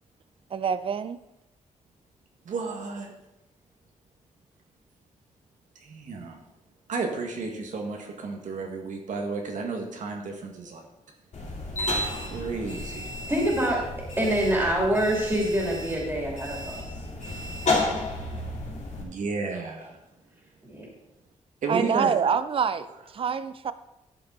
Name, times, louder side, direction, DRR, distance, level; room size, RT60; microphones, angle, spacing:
voice 1, 0.5-1.2 21.7-22.9 23.1-23.7, right 6 dB, 45° right, 14 dB, 0.5 m, -26 dB
voice 2, 2.4-3.1 5.8-6.4 6.9-10.9 12.1-13.1 19.0-20.0 21.6-22.2, right 4 dB, 80° right, 2 dB, 1.8 m, -32 dB
sound 1, 11.3-19.0, left 2 dB, 65° left, 3.0 m, -32 dB
voice 3, 13.3-13.8 14.2-16.8 20.6-20.8, right 1 dB, 15° right, -3 dB, 2.8 m, -25 dB
11.5 x 6.9 x 4.0 m, 0.92 s
wide cardioid pair, 125°, 13 cm